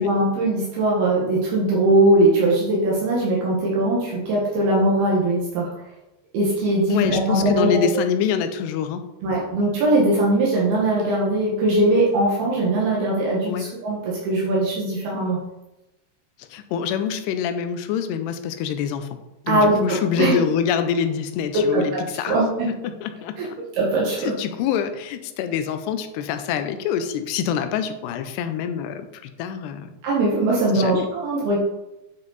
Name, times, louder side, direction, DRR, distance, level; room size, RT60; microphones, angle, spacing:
voice 1, 0.0-5.7 6.3-8.0 9.2-15.4 19.5-20.4 21.7-21.8 22.2-22.7 23.4-23.5 23.8-24.3 30.0-31.6, right 2 dB, 70° right, -4 dB, 3.2 m, -20 dB
voice 2, 6.9-9.1 13.5-13.7 16.5-19.1 19.5-22.4 22.8-23.6 24.2-29.9 30.7-31.1, left 8 dB, 80° left, 9 dB, 2.7 m, -25 dB
9.6 x 5.3 x 4.0 m, 0.95 s
omnidirectional pair, 4.9 m